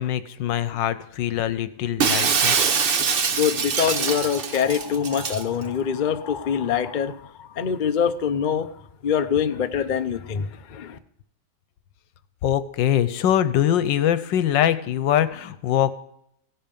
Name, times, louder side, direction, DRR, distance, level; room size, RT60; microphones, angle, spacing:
voice 1, 0.0-2.6 12.4-15.9, left 10 dB, 85° left, 14 dB, 1.5 m, -23 dB
Shatter, 2.0-5.4, right 6 dB, 50° right, 0.7 m, -23 dB
voice 2, 3.3-8.7 9.0-11.0, left 8 dB, 65° left, 9 dB, 0.4 m, -24 dB
16.0 x 10.5 x 5.3 m, 0.75 s
omnidirectional pair, 1.9 m